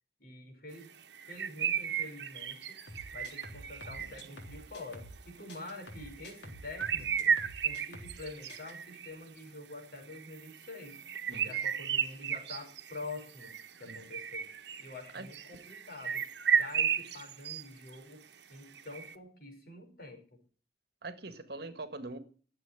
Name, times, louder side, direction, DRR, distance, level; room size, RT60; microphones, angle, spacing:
voice 1, 0.2-0.9 1.3-2.8 3.1-7.4 7.6-11.0 11.3-13.5 13.8-16.2 16.5-18.2 18.5-20.4, left 2 dB, 55° left, 3 dB, 5.4 m, -47 dB
sound 1, 1.1-4.4 6.0-6.2 6.5-9.1 10.0-17.6 17.9-18.0 18.8-19.2, right 7 dB, 75° right, 1.1 m, -34 dB
sound 2, 2.9-5.2 5.5-8.2 8.5-8.7, equal, 85° left, 3.6 m, -48 dB
voice 2, 21.0-22.2, right 2 dB, 60° right, 10 dB, 1.7 m, -42 dB
13.0 x 7.9 x 9.0 m, 0.41 s
head